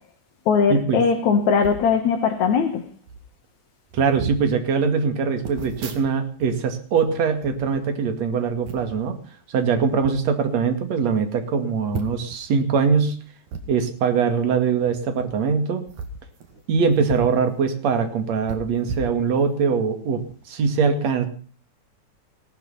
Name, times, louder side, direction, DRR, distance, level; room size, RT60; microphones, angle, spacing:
voice 1, 0.5-2.8, left 6 dB, 75° left, 2.9 m, -20 dB
sound 1, 1.6-1.9 2.7-2.8 3.0-3.3 3.9-4.5 5.4-6.5 6.8-8.2 8.6-9.0 9.8-10.1 10.7-10.8 11.0-11.1 11.9-12.4 13.5-13.6 15.1-15.3 15.8-17.4 17.7-17.8 18.5-19.7 20.2-20.3, right 4 dB, 85° right, 3.7 m, -35 dB
voice 2, 3.9-9.2 9.5-13.1 13.7-15.9 16.7-21.3, right 5 dB, 65° right, 3.5 m, -22 dB
18.0 x 13.5 x 5.6 m
omnidirectional pair, 3.4 m